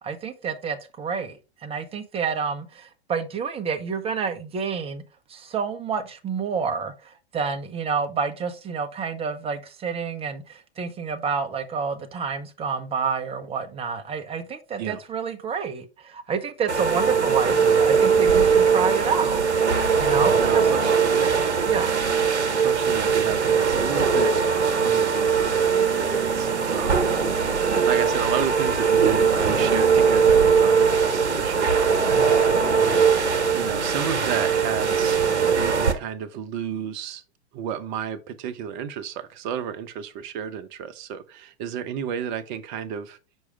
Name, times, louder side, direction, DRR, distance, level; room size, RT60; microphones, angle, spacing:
voice 1, 0.0-5.0 5.3-19.5 20.0-20.7 21.6-21.9, right 6 dB, 15° right, 0.8 m, -29 dB
sound 1, 16.7-35.9, right 6 dB, 80° right, 1.1 m, -20 dB
voice 2, 20.4-21.4 22.5-24.4 24.8-27.1 27.5-33.1 33.5-37.2 37.5-43.2, right 8 dB, 45° right, 0.9 m, -32 dB
6.3 x 4.8 x 3.3 m
figure-of-eight pair, 100°, 33 cm